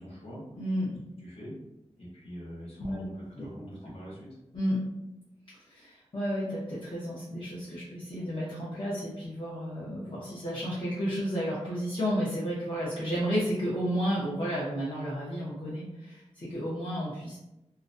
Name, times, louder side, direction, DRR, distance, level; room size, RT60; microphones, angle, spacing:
voice 1, 0.0-0.4 1.2-1.5 2.0-4.3, equal, 65° left, -7 dB, 1.0 m, -44 dB
voice 2, 0.6-1.0 2.8-3.0 3.4-3.5 4.5-4.8 5.5-17.4, equal, 45° left, -8 dB, 0.7 m, -32 dB
2.4 x 2.1 x 2.5 m, 0.91 s
wide cardioid pair, 100°, 11 cm